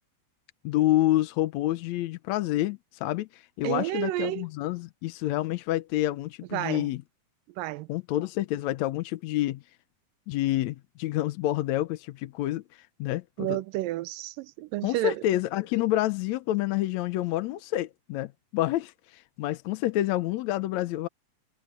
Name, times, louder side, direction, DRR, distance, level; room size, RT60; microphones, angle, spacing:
voice 1, 0.6-7.0 7.9-9.6 10.3-13.6 14.8-21.1, left 15 dB, 75° left, 1.8 m, -28 dB
voice 2, 3.6-4.5 6.5-6.9 7.6-7.9 13.4-15.2, right 16 dB, 90° right, 2.4 m, -31 dB
omnidirectional pair, 3.8 m